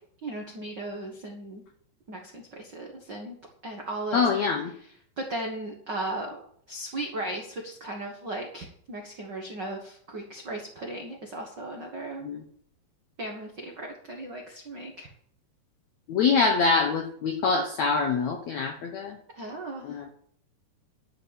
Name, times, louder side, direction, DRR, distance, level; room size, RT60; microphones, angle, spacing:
voice 1, 0.2-1.6 2.1-4.2 5.2-6.4 6.7-12.3 13.2-15.1 19.3-20.0, right 2 dB, 85° right, 0 dB, 0.9 m, -36 dB
voice 2, 4.1-4.7 12.2-12.4 16.1-19.2 19.8-20.1, left 4 dB, 80° left, 3 dB, 1.6 m, -25 dB
12.0 x 5.6 x 8.9 m, 0.64 s
omnidirectional pair, 4.8 m